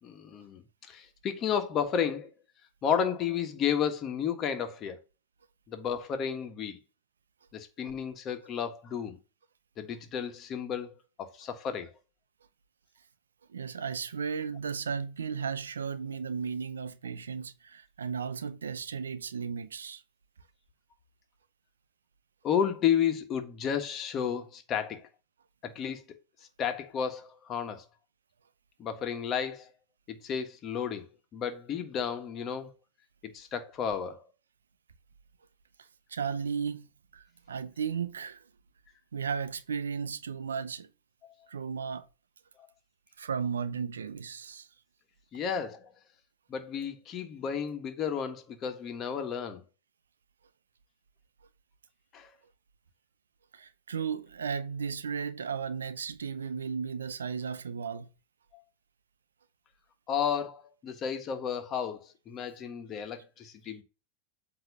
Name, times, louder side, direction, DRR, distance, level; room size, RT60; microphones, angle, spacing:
voice 1, 0.0-2.3 2.8-5.0 5.7-6.8 7.5-9.2 9.8-11.9 22.4-25.1 25.6-26.0 26.6-27.8 28.8-29.7 30.1-32.7 33.2-34.2 45.3-45.9 46.5-49.6 52.1-52.3 60.1-63.8, left 8 dB, 35° left, 1.5 m, -32 dB
voice 2, 13.5-20.0 36.1-36.9 37.1-38.4 39.1-40.9 41.5-42.1 43.2-44.7 53.5-58.1, right 6 dB, 90° right, 0.6 m, -35 dB
7.9 x 3.1 x 5.4 m
hypercardioid pair, 100°, 0 cm